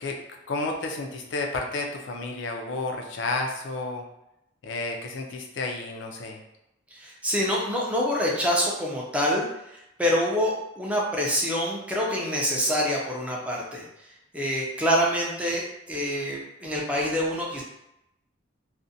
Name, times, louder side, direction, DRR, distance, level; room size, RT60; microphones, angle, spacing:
voice 1, 0.0-4.0 4.6-6.4, left 3 dB, 75° left, 2 dB, 0.4 m, -31 dB
voice 2, 6.9-13.8 14.3-17.6, equal, 5° right, -3 dB, 0.4 m, -26 dB
2.5 x 2.1 x 2.6 m, 0.86 s
head